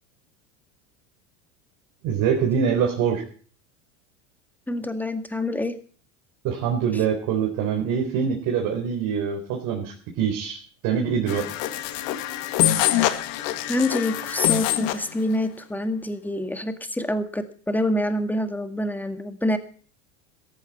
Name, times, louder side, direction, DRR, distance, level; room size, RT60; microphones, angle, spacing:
voice 1, 2.0-3.2 6.4-10.6 10.8-11.5, right 7 dB, 55° right, 0 dB, 4.1 m, -24 dB
voice 2, 4.7-5.8 6.9-7.0 12.9-13.1 13.7-19.6, left 1 dB, 5° left, 8 dB, 1.9 m, -26 dB
sound 1, 11.3-15.1, left 14 dB, 60° left, 1.8 m, -24 dB
17.0 x 14.5 x 4.3 m, 0.43 s
hypercardioid pair, 100°, 39 cm